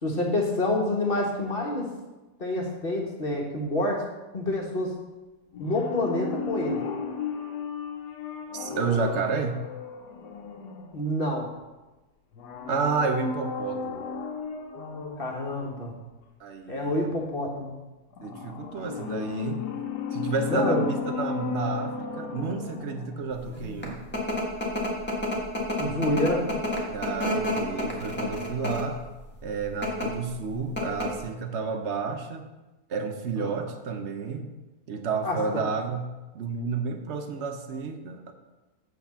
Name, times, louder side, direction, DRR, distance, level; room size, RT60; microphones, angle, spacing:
voice 1, 0.0-1.9 2.4-4.0 4.3-4.9 5.6-6.8 10.9-11.5 15.2-15.9 16.7-17.7 20.5-20.8 25.8-26.5 33.4-33.6 35.2-35.4, left 1 dB, 35° left, 0 dB, 1.4 m, -27 dB
sound 1, 5.5-11.3 12.3-15.4 18.1-23.3 23.6-23.7, left 5 dB, 80° left, 1.5 m, -35 dB
voice 2, 8.5-9.6 12.7-14.1 16.4-17.1 18.2-19.6 20.1-24.0 26.9-29.0 29.4-32.5 32.9-34.5 34.9-36.1 36.3-38.3, right 4 dB, 55° right, 6 dB, 0.9 m, -30 dB
sound 2, 23.5-29.0 29.7-30.1 30.4-30.5 30.8-31.2, left 1 dB, 5° left, 1.5 m, -29 dB
8.2 x 4.0 x 7.0 m, 1.1 s
omnidirectional pair, 1.7 m